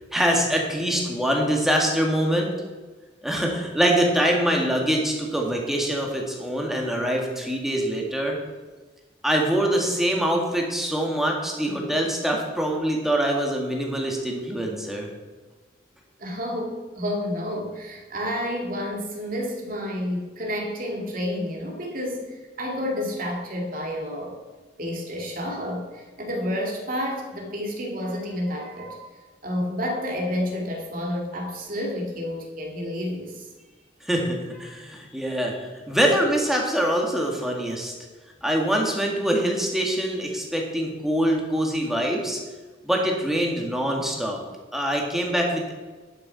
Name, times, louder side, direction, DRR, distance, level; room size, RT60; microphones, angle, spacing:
voice 1, 0.1-2.5 3.2-8.4 9.2-15.1 34.1-35.6 35.9-37.9 38.4-42.4 42.8-44.4 44.7-45.7, right 1 dB, ahead, 0 dB, 1.8 m, -24 dB
voice 2, 16.2-24.4 24.8-29.0 29.4-33.5, left 1 dB, 50° right, 0 dB, 2.2 m, -30 dB
11.0 x 6.8 x 5.6 m, 1.3 s
head